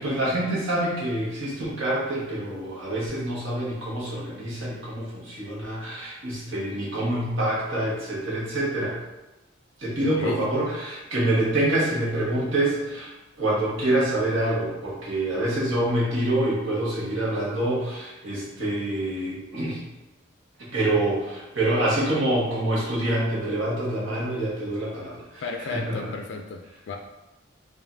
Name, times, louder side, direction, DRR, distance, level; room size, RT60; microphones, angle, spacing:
voice 1, 0.0-8.9 9.8-13.1 13.4-19.8 20.6-25.4 25.7-26.0, right 1 dB, 80° right, -6 dB, 1.3 m, -26 dB
voice 2, 10.2-10.5 25.4-27.0, left 4 dB, 60° left, 2 dB, 0.3 m, -34 dB
5.1 x 2.6 x 2.6 m, 1.0 s
head